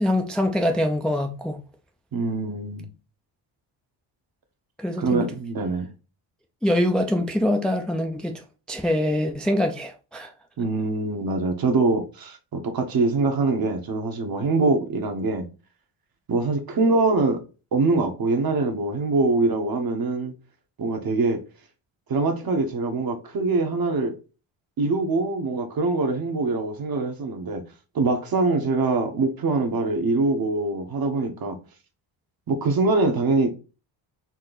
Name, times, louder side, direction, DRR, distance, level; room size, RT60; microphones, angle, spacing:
voice 1, 0.0-1.6 4.8-5.3 6.6-10.3, left 1 dB, ahead, 0.5 m, -24 dB
voice 2, 2.1-2.9 5.0-5.9 10.6-15.5 16.3-17.4 17.7-20.3 20.8-21.4 22.1-24.1 24.8-27.6 27.9-31.6 32.5-33.5, right 3 dB, 45° right, 1.2 m, -23 dB
4.3 x 2.9 x 4.0 m
cardioid pair, 125°, 49 cm